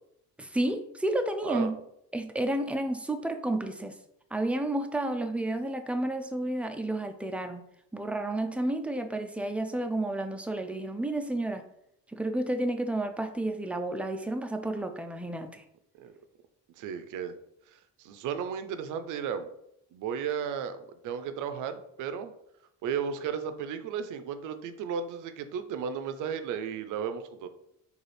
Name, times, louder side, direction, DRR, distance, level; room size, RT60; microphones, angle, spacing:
voice 1, 0.4-1.8 2.1-3.9 4.3-7.6 7.9-11.6 12.1-15.6, right 1 dB, 5° right, 6 dB, 0.3 m, -31 dB
voice 2, 16.8-17.4 17.7-19.5 19.9-22.3 22.8-27.5, right 7 dB, 85° right, 10 dB, 0.5 m, -34 dB
4.1 x 2.4 x 3.2 m, 0.78 s
cardioid pair, 90°, 30 cm